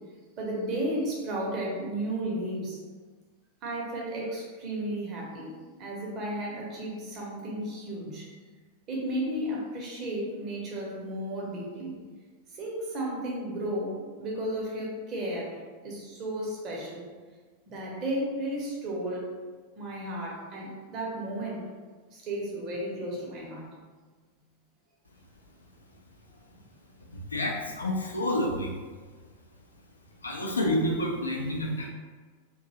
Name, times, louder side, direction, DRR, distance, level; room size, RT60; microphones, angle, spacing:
voice 1, 0.4-2.8 3.6-5.5 5.8-8.3 8.9-12.0 12.6-17.1 17.7-19.3 19.8-21.6 22.1-23.7, right 1 dB, 35° right, -3 dB, 0.9 m, -33 dB
voice 2, 27.1-28.7 30.2-31.9, left 1 dB, 75° left, 0 dB, 0.5 m, -29 dB
2.6 x 2.3 x 2.8 m, 1.4 s
figure-of-eight pair, 90°, 0 cm